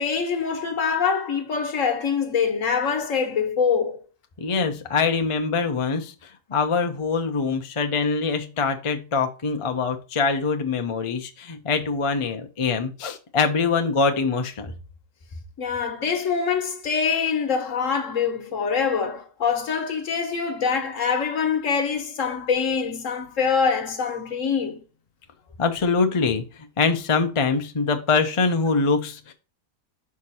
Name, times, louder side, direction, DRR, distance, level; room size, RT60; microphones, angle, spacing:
voice 1, 0.0-4.0 15.6-24.8, left 6 dB, 55° left, 1.5 m, -24 dB
voice 2, 4.4-6.1 6.5-14.7 25.6-26.4 26.8-29.3, left 4 dB, 35° left, 0.5 m, -23 dB
5.8 x 4.8 x 4.1 m
omnidirectional pair, 1.6 m